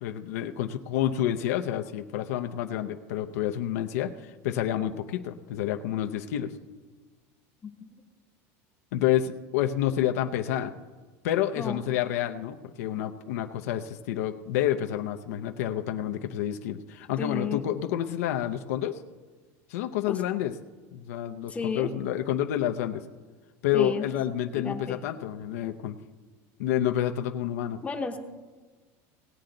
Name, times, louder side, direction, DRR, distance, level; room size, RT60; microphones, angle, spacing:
voice 1, 0.0-6.5 8.9-10.7 11.2-19.0 19.7-20.5 20.9-23.0 23.6-26.0 26.6-27.8, left 11 dB, 90° left, 6 dB, 0.6 m, -29 dB
voice 2, 17.2-17.6 20.1-20.2 21.5-21.9 23.7-24.0 24.5-25.0 27.8-28.2, left 5 dB, 15° left, 5 dB, 0.8 m, -32 dB
18.5 x 8.5 x 3.9 m, 1.4 s
supercardioid pair, 150°, 8 cm